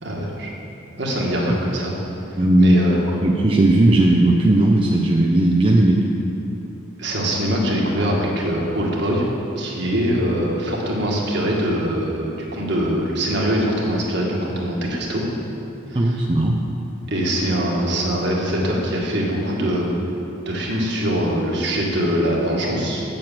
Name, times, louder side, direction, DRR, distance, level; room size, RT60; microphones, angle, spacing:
voice 1, 0.0-0.5 1.0-2.0 2.3-3.0 7.0-9.3 9.6-15.2 15.9-16.2 17.1-19.9 20.5-23.0, equal, 55° right, -3 dB, 1.9 m, -23 dB
voice 2, 2.4-2.8 3.1-6.0 15.9-16.6, right 1 dB, 25° right, -1 dB, 0.5 m, -16 dB
8.9 x 7.8 x 7.4 m, 2.9 s
head